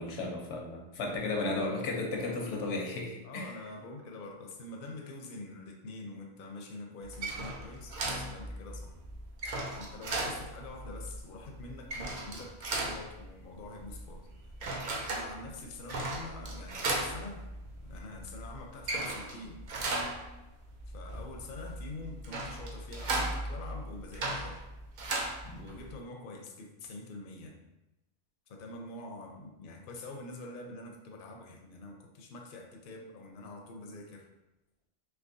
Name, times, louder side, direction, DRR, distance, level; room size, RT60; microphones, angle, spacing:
voice 1, 0.0-3.5 25.4-25.6, left 2 dB, 85° left, 0 dB, 1.0 m, -34 dB
voice 2, 3.2-8.9 9.7-14.2 15.0-17.5 17.8-19.6 20.9-24.6 25.5-27.5 28.5-34.3, left 2 dB, 60° left, 1 dB, 0.6 m, -45 dB
sound 1, 7.0-25.9, right 2 dB, 55° right, 0.5 m, -37 dB
3.4 x 2.8 x 2.6 m, 0.97 s
omnidirectional pair, 1.2 m